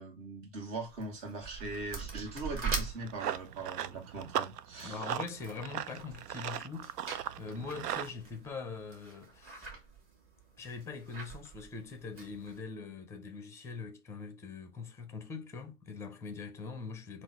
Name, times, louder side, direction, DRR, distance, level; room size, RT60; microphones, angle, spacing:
voice 1, 0.0-5.1, right 2 dB, 55° right, 1.9 m, -41 dB
sound 1, 0.9-12.6, right 5 dB, 25° right, 1.6 m, -44 dB
Run, 2.8-8.1, right 10 dB, 80° right, 0.5 m, -38 dB
voice 2, 4.8-6.9 7.4-9.7 10.6-17.2, left 4 dB, 5° left, 0.5 m, -42 dB
3.8 x 2.5 x 4.5 m
hypercardioid pair, 115°, 46 cm